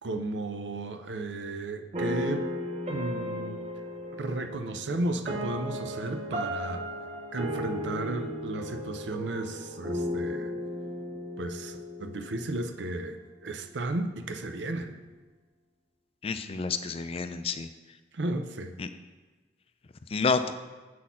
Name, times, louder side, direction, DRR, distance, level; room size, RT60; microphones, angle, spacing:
voice 1, 0.0-2.5 2.9-3.7 4.1-6.8 7.3-10.5 11.4-15.0 18.1-18.7, right 2 dB, 85° right, 7 dB, 0.6 m, -34 dB
sound 1, 1.9-13.0, equal, 40° right, 0.8 m, -35 dB
voice 2, 16.2-17.7 18.8-18.9 20.1-20.5, left 4 dB, 35° left, 10 dB, 0.4 m, -29 dB
7.5 x 4.2 x 5.6 m, 1.3 s
head